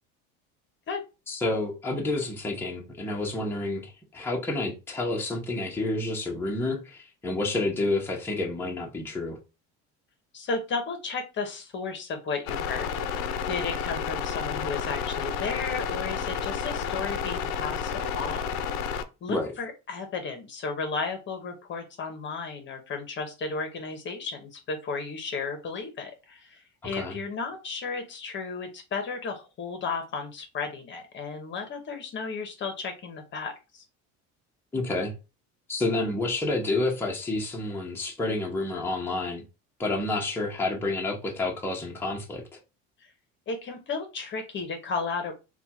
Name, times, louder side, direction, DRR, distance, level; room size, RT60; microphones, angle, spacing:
voice 1, 1.3-9.4 19.3-19.5 27.0-27.1 34.7-35.1 35.7-39.4 39.8-42.6, left 2 dB, 5° left, 0.8 m, -29 dB
voice 2, 10.3-18.8 19.2-33.8 43.0-43.1 43.5-45.3, left 4 dB, 40° left, 0.9 m, -34 dB
sound 1, 12.5-19.0, left 7 dB, 65° left, 0.6 m, -31 dB
3.4 x 2.3 x 4.2 m
cardioid pair, 140°, 30 cm